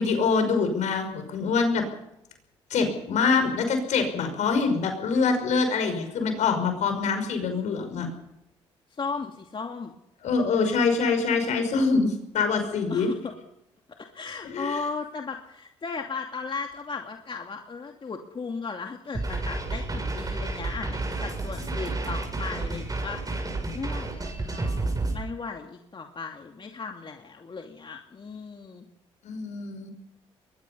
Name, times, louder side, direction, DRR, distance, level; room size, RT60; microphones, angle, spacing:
voice 1, 0.0-1.8 2.7-8.1 10.2-13.1 14.4-14.8 29.2-29.9, left 4 dB, 70° left, 6 dB, 5.6 m, -25 dB
voice 2, 9.0-9.9 10.4-10.8 12.9-13.4 13.9-23.2 23.7-28.9, left 4 dB, 40° left, 3 dB, 2.6 m, -36 dB
sound 1, 19.1-25.2, right 2 dB, 30° right, 7.3 m, -30 dB
22.5 x 20.5 x 5.6 m, 0.84 s
hypercardioid pair, 50°, 13 cm